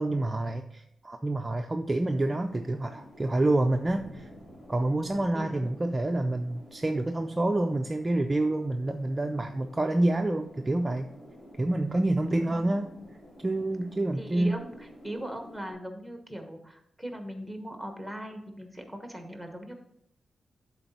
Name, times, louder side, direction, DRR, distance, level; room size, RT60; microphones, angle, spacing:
voice 1, 0.0-4.3 4.7-11.1 11.6-12.9 13.4-14.5, right 2 dB, 20° right, 5 dB, 0.4 m, -27 dB
sound 1, 2.0-15.7, equal, 35° left, 2.3 m, -50 dB
voice 2, 5.3-5.7 12.3-12.6 14.2-19.7, equal, ahead, 5 dB, 1.1 m, -39 dB
11.0 x 4.0 x 4.2 m, 0.73 s
wide cardioid pair, 135°, 0 cm